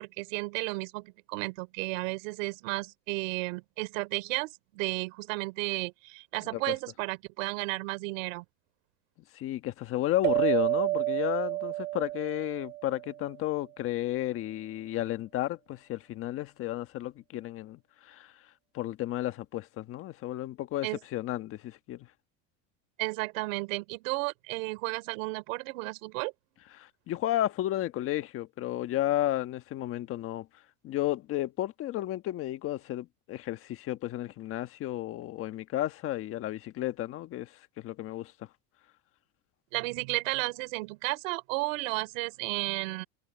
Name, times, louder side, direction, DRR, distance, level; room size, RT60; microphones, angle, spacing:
voice 1, 0.0-8.4 20.8-21.0 23.0-26.3 39.7-43.0, right 25 dB, 65° right, 4.1 m, -33 dB
voice 2, 9.3-17.8 18.0-18.3 18.7-22.1 26.8-30.5 30.8-37.5 37.8-38.3, left 14 dB, 30° left, 1.3 m, -32 dB
sound 1, 10.2-13.2, right 19 dB, 85° right, 5.2 m, -30 dB
supercardioid pair, 165°, 42 cm